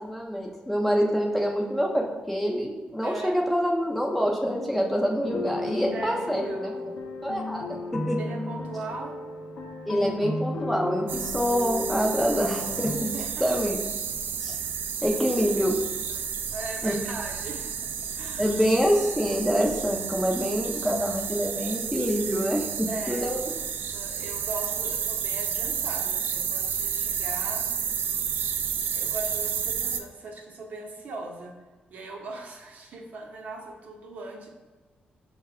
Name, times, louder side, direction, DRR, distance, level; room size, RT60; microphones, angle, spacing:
voice 1, 0.0-6.8 7.2-7.6 7.9-8.2 9.9-13.1 13.4-13.8 14.4-14.6 15.0-15.7 16.8-16.9 18.4-23.5, equal, 5° left, -1 dB, 0.4 m, -26 dB
voice 2, 3.0-3.4 5.9-7.0 8.2-9.2 13.1-13.5 15.1-15.2 16.1-16.3 16.5-17.7 18.1-18.6 22.9-23.7 23.9-27.7 28.8-31.6 31.9-34.5, right 2 dB, 55° right, 1 dB, 0.7 m, -39 dB
sound 1, 5.2-12.9, left 2 dB, 55° left, 0.6 m, -34 dB
sound 2, 11.1-30.0, right 7 dB, 85° right, 0.3 m, -31 dB
5.7 x 2.1 x 3.5 m, 1.3 s
wide cardioid pair, 160°, 3 cm